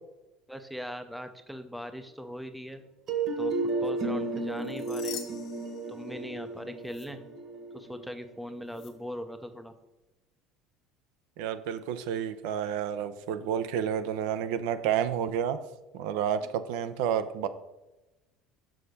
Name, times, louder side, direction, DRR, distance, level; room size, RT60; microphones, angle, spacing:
voice 1, 0.5-2.8 3.4-5.3 5.9-7.2 7.7-9.7, equal, ahead, 8 dB, 0.6 m, -40 dB
sound 1, 3.1-8.9, right 3 dB, 45° right, 1.3 m, -33 dB
sound 2, 4.5-6.5 6.8-7.1 8.7-8.9, left 8 dB, 55° left, 1.7 m, -45 dB
voice 2, 11.4-15.6 15.9-17.5, right 9 dB, 80° right, 11 dB, 0.6 m, -30 dB
6.5 x 5.6 x 5.0 m, 1.0 s
cardioid pair, 145°, 0 cm